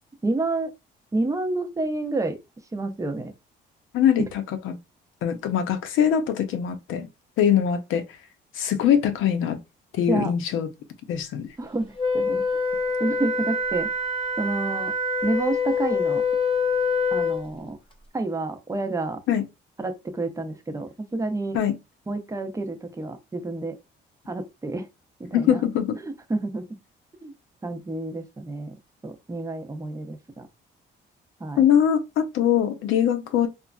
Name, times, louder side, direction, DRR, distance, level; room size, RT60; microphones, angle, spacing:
voice 1, 0.2-0.7 1.1-2.4 2.7-3.3 10.1-10.3 11.6-12.4 13.0-13.9 14.4-14.9 15.2-16.2 17.1-17.8 18.1-19.2 19.8-21.6 22.1-23.8 24.3-24.9 25.2-25.6 26.3-26.6 27.2-27.3 27.6-28.7 29.0-30.5 31.4-31.6, right 2 dB, 15° right, 0.6 m, -29 dB
voice 2, 3.9-4.8 5.2-7.1 7.4-8.0 8.5-9.6 9.9-10.7 11.1-11.5 19.3-19.4 21.5-21.8 25.3-26.0 31.6-33.5, left 9 dB, 85° left, 0.6 m, -22 dB
Wind instrument woodwind instrument, 12.0-17.5, left 4 dB, 25° left, 0.7 m, -25 dB
3.0 x 2.4 x 2.2 m
cardioid pair, 90°, 20 cm